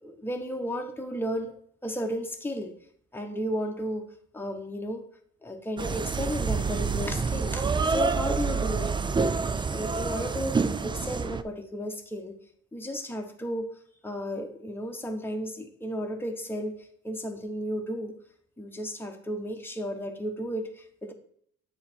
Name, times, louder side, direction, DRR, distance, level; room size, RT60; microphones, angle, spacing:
voice 1, 0.0-1.5 1.8-2.7 3.1-4.0 4.3-5.0 5.4-12.4 12.7-13.7 14.0-16.8 17.0-18.1 18.6-21.1, equal, 5° left, 3 dB, 1.1 m, -33 dB
sound 1, 5.8-11.4, right 4 dB, 15° right, 0.3 m, -27 dB
8.5 x 4.0 x 4.4 m, 0.64 s
cardioid pair, 90°, 30 cm